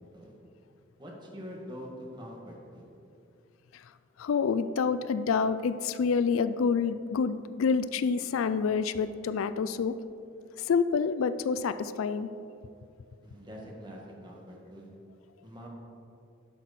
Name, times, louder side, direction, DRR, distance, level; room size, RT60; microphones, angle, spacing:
voice 1, 1.0-2.8 13.2-14.9 15.4-15.7, equal, 20° right, -2 dB, 1.5 m, -44 dB
voice 2, 4.2-9.9 10.6-12.3, left 5 dB, 85° left, 13 dB, 0.4 m, -28 dB
11.5 x 6.1 x 4.1 m, 2.5 s
head